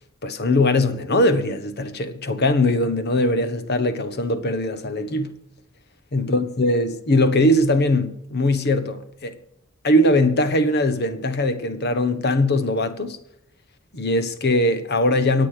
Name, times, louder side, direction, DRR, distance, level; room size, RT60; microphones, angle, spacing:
voice 1, 0.2-5.3 6.1-9.3 9.8-13.2 13.9-15.5, left 1 dB, 50° left, 1.2 m, -21 dB
25.0 x 8.4 x 5.0 m
head